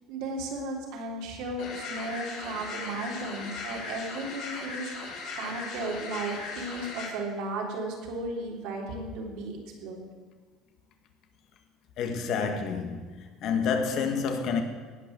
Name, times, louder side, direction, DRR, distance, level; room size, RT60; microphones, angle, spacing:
voice 1, 0.1-10.1, right 2 dB, 75° right, 3.3 m, -35 dB
sound 1, 1.6-7.1, left 4 dB, 75° left, 4.0 m, -38 dB
voice 2, 12.0-13.1 13.4-14.6, left 6 dB, 60° left, 1.8 m, -28 dB
17.5 x 5.9 x 7.8 m
supercardioid pair, 105°, 0 cm